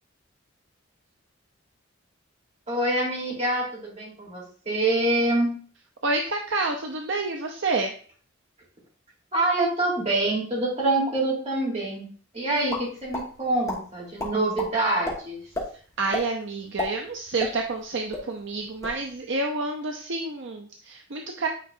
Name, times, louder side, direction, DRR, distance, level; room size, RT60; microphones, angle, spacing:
voice 1, 2.7-5.6 9.3-12.0 12.3-15.4, right 2 dB, 35° right, -4 dB, 3.5 m, -25 dB
voice 2, 6.0-7.9 16.0-21.5, right 3 dB, 65° right, 2 dB, 0.7 m, -28 dB
sound 1, 12.7-13.3 13.7-13.8 14.2-14.7 15.0-15.2 15.5-15.7 16.1-16.3 16.6-17.8 18.1-18.2 18.6-19.0, left 1 dB, 15° left, 1.6 m, -30 dB
9.0 x 5.1 x 2.6 m, 0.43 s
head